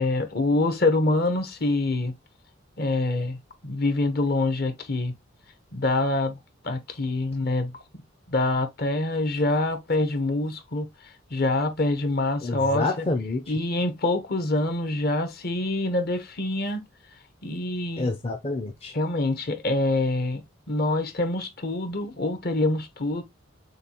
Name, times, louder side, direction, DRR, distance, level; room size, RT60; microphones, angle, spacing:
voice 1, 0.0-2.1 2.8-3.4 3.6-5.1 5.7-6.4 6.6-7.7 8.3-13.1 13.5-16.8 17.4-18.1 18.9-23.2, left 2 dB, 50° left, 0.8 m, -25 dB
voice 2, 12.4-13.4 18.0-18.9, left 2 dB, 30° left, 0.5 m, -28 dB
6.6 x 2.3 x 2.8 m
head